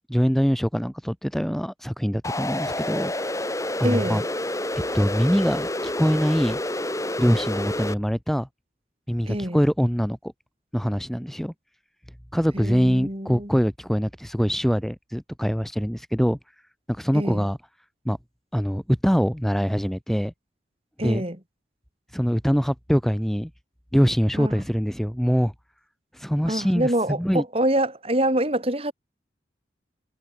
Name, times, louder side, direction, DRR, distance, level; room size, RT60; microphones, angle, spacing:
voice 1, 0.1-3.1 3.8-4.2 4.9-6.6 7.2-8.5 9.1-10.2 10.7-11.5 12.3-16.4 16.9-17.6 18.0-18.2 18.5-20.3 21.0-21.2 22.1-23.5 23.9-25.5 26.1-27.4, equal, ahead, 1.7 m, -23 dB
sound 1, 2.2-7.9, left 1 dB, 15° left, 3.9 m, -28 dB
voice 2, 3.8-4.2 9.3-9.6 12.5-13.5 17.1-17.5 21.0-21.4 24.4-24.6 26.5-28.9, right 1 dB, 30° right, 4.1 m, -25 dB
head